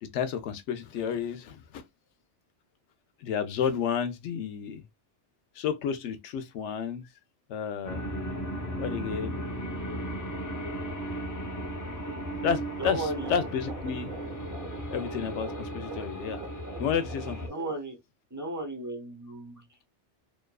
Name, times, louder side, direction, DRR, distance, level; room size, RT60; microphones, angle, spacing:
voice 1, 0.0-1.8 3.2-4.8 5.6-7.1 7.5-8.0 8.8-9.4 12.4-14.1 14.9-16.4 16.8-17.5, left 7 dB, 85° left, 0.9 m, -31 dB
sound 1, 7.8-17.5, equal, 20° left, 0.5 m, -36 dB
sound 2, 12.7-17.8, right 4 dB, 55° right, 0.8 m, -44 dB
voice 2, 12.8-13.3 17.5-18.0 18.3-19.9, right 2 dB, 20° right, 0.6 m, -35 dB
2.6 x 2.3 x 2.2 m
omnidirectional pair, 1.2 m